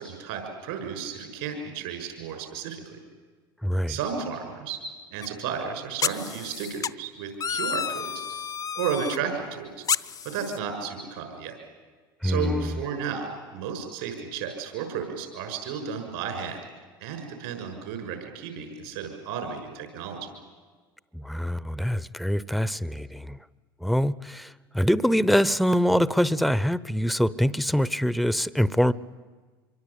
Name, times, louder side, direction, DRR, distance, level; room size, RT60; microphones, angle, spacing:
voice 1, 0.0-3.0 3.9-4.8 5.1-8.1 8.7-9.8 10.2-11.6 12.2-16.6 17.0-20.3, right 6 dB, 70° right, 6 dB, 6.5 m, -33 dB
voice 2, 3.6-4.0 12.2-12.8 21.1-23.4 23.8-28.9, equal, ahead, 18 dB, 0.8 m, -24 dB
sound 1, 5.2-5.3 6.0-6.9 7.4-9.2 9.9-10.6, left 7 dB, 30° left, 0.7 m, -30 dB
26.0 x 24.0 x 8.6 m, 1.4 s
hypercardioid pair, 75°, 12 cm